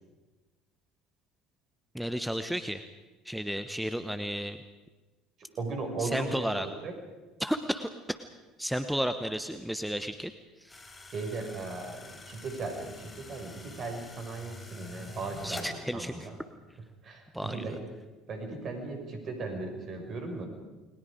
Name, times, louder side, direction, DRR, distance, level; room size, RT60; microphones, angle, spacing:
voice 1, 1.9-2.8 3.2-4.6 6.0-6.7 7.4-8.2 8.6-10.3 10.6-10.8 15.4-16.3 17.3-17.8, equal, ahead, 9 dB, 1.1 m, -33 dB
voice 2, 5.6-6.9 11.1-16.4 17.0-17.8 18.3-20.5, right 3 dB, 45° right, 4 dB, 6.1 m, -37 dB
sound 1, 10.7-15.7, left 2 dB, 25° left, 5.1 m, -46 dB
30.0 x 21.5 x 5.1 m, 1.2 s
figure-of-eight pair, 60°, 0 cm